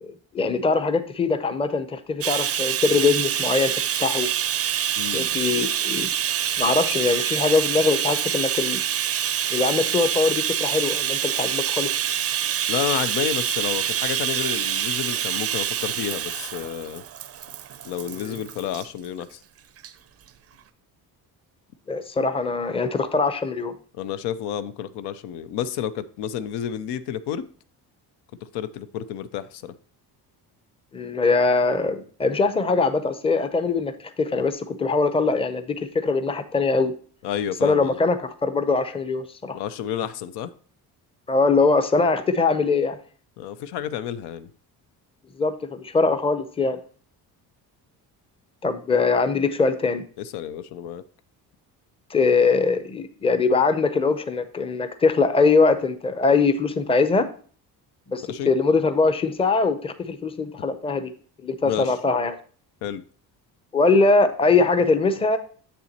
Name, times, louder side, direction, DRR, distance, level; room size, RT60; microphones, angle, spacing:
voice 1, 0.0-4.3 5.1-6.1 6.6-8.8 9.5-11.9 18.1-18.4 21.9-23.8 30.9-36.9 37.6-39.6 41.3-43.0 45.4-46.8 48.6-50.0 52.1-57.3 58.1-61.1 61.4-62.4 63.7-65.4, left 4 dB, 15° left, 0.5 m, -22 dB
Bathtub (filling or washing), 2.2-18.9 19.8-19.9 20.3-20.4, right 9 dB, 40° right, 0.4 m, -26 dB
voice 2, 5.0-5.4 12.7-17.0 17.8-19.4 23.9-27.5 28.5-29.7 37.2-38.0 39.5-40.5 43.4-44.5 50.2-51.0 58.3-58.5 61.6-62.0 62.8-63.0, left 10 dB, 85° left, 0.6 m, -30 dB
7.3 x 6.8 x 2.8 m
cardioid pair, 115°, 39 cm